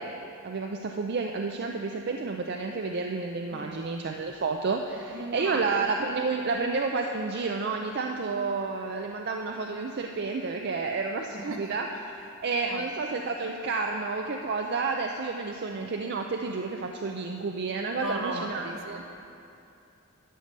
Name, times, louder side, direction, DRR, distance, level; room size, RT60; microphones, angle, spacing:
voice 1, 0.0-11.9 12.4-19.0, right 4 dB, 50° right, 2 dB, 0.5 m, -30 dB
voice 2, 3.5-3.8 5.1-5.7 11.3-11.6 12.6-12.8 18.0-18.8, right 2 dB, 70° right, 3 dB, 1.1 m, -36 dB
11.5 x 6.7 x 6.5 m, 2.7 s
head